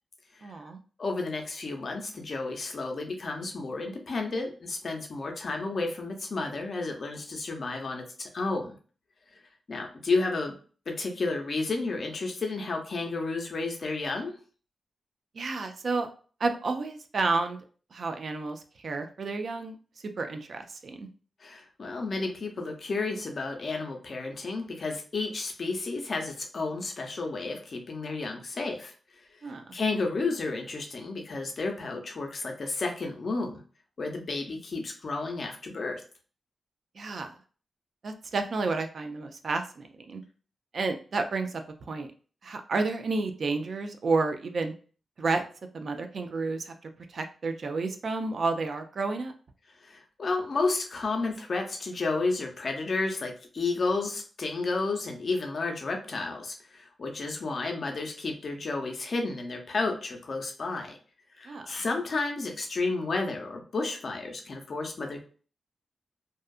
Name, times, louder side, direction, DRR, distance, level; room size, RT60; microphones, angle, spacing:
voice 1, 0.4-0.8 15.3-16.1 16.4-17.6 17.9-19.8 20.2-21.1 29.4-29.7 37.0-37.4 38.0-40.2 40.7-41.6 41.9-42.1 42.4-44.7 45.2-45.4 45.7-46.7 47.1-49.3 61.5-61.7, right 3 dB, 55° right, 6 dB, 0.4 m, -30 dB
voice 2, 1.0-8.8 9.7-10.6 10.9-14.3 21.4-28.9 29.7-33.6 34.0-36.0 49.8-61.0 61.4-65.2, left 3 dB, 50° left, 3 dB, 0.6 m, -32 dB
2.6 x 2.4 x 2.3 m, 0.40 s
wide cardioid pair, 115°, 0 cm